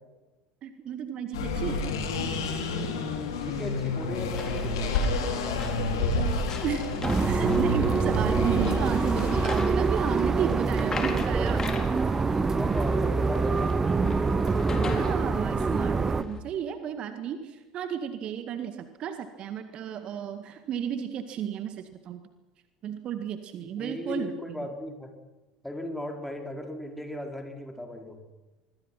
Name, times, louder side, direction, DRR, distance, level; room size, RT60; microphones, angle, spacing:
voice 1, 0.6-2.0 6.6-6.9 7.2-11.7 14.7-22.2 22.8-24.7, right 8 dB, 40° right, 9 dB, 1.9 m, -33 dB
sound 1, 1.3-9.5, left 2 dB, 65° left, 4.4 m, -29 dB
voice 2, 3.4-6.4 12.5-14.2 23.6-25.1 25.6-28.2, left 1 dB, 5° left, 3 dB, 4.8 m, -38 dB
sound 2, 4.4-16.4, left 4 dB, 25° left, 4.0 m, -40 dB
sound 3, 7.0-16.2, right 4 dB, 20° right, 1.2 m, -25 dB
26.5 x 22.0 x 6.0 m, 1.1 s
figure-of-eight pair, 70°, 3 cm